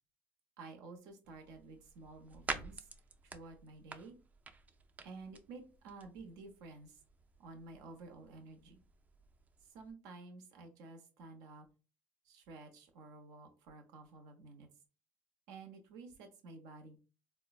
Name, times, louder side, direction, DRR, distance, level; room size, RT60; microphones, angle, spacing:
voice 1, 0.6-2.9 3.2-4.2 5.0-7.0 7.4-8.8 9.6-11.6 12.2-14.7 15.5-17.0, right 3 dB, 75° right, 4 dB, 0.7 m, -52 dB
sound 1, 1.2-9.9, right 4 dB, 25° right, 0.4 m, -49 dB
3.7 x 2.1 x 2.3 m, 0.33 s
supercardioid pair, 85°, 6 cm